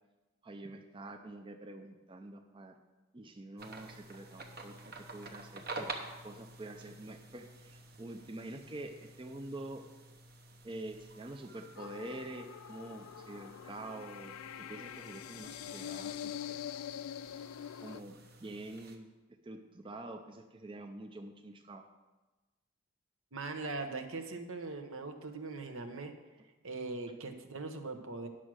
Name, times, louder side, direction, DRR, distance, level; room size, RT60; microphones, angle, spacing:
voice 1, 0.4-2.8 3.1-5.9 6.2-9.8 10.6-16.3 17.3-17.4 17.8-18.2 18.4-19.1 19.4-21.8, right 2 dB, 25° right, 5 dB, 0.5 m, -46 dB
sound 1, 3.6-19.0, right 2 dB, 45° right, 1.0 m, -50 dB
sound 2, 11.8-18.0, left 10 dB, 85° left, 0.3 m, -44 dB
voice 2, 23.3-26.1 26.6-28.3, right 3 dB, 75° right, 7 dB, 1.0 m, -40 dB
10.0 x 6.2 x 6.2 m, 1.2 s
head